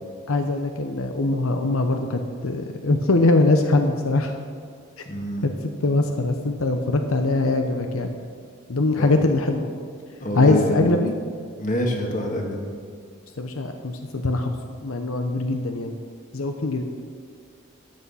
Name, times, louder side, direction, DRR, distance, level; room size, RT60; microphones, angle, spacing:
voice 1, 0.3-4.4 5.0-5.1 5.4-8.2 8.7-9.7 10.3-11.1 13.4-15.9 16.3-16.8, left 2 dB, 85° left, 5 dB, 0.9 m, -22 dB
voice 2, 5.1-5.4 9.0-9.1 10.2-10.9 11.6-12.7, equal, 35° left, 1 dB, 1.9 m, -26 dB
14.0 x 8.4 x 5.7 m, 2.1 s
head